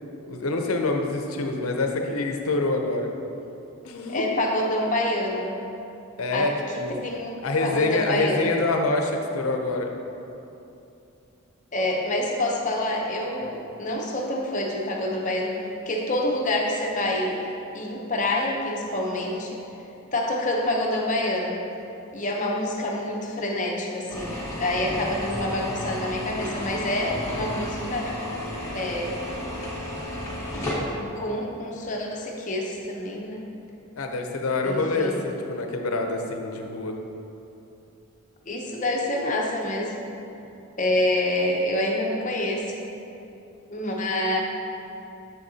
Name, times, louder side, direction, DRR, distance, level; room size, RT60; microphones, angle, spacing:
voice 1, 0.3-3.1 3.8-4.2 6.2-6.9 7.4-9.9 13.4-13.5 34.0-37.0, left 2 dB, 75° left, 3 dB, 0.6 m, -26 dB
voice 2, 4.1-5.5 6.3-6.5 7.0-7.3 7.6-8.5 11.7-15.5 15.9-19.6 20.1-21.6 22.1-28.3 28.7-29.2 30.8-33.4 34.6-35.2 38.5-40.0 40.8-42.7 43.7-44.4, left 1 dB, 35° left, -1 dB, 0.7 m, -27 dB
sound 1, 24.1-30.8, left 1 dB, 15° left, 1.1 m, -33 dB
6.9 x 6.5 x 2.8 m, 2.8 s
head